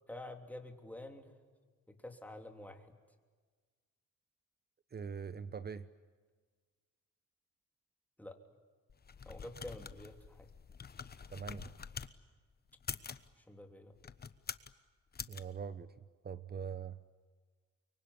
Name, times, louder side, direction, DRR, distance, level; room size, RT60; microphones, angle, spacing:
voice 1, 0.1-1.3 1.9-2.9 8.2-8.3 9.2-10.5 13.4-13.9, left 1 dB, 5° left, 4 dB, 3.2 m, -48 dB
voice 2, 4.9-5.9 11.3-11.7 15.3-17.0, right 6 dB, 30° right, 13 dB, 0.9 m, -43 dB
sound 1, 8.9-12.1 12.7-13.3 14.0-14.7 15.1-15.4, left 6 dB, 30° left, 1.1 m, -46 dB
24.5 x 23.5 x 9.9 m, 1.5 s
cardioid pair, 90°, 30 cm